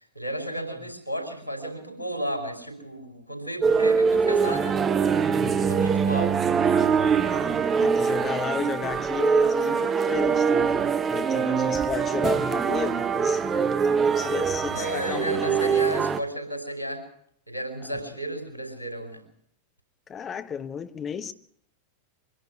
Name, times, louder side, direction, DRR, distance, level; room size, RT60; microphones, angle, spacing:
voice 1, 0.0-4.8 5.6-6.3 14.7-17.0 17.5-19.2, right 1 dB, 85° right, 5.1 m, -33 dB
sound 1, 3.6-16.2, right 6 dB, 20° right, 0.8 m, -23 dB
voice 2, 5.3-5.7 7.3-15.9 17.8-18.0 20.1-21.3, left 7 dB, 25° left, 1.2 m, -34 dB
23.5 x 11.5 x 9.9 m
figure-of-eight pair, 90°, 0 cm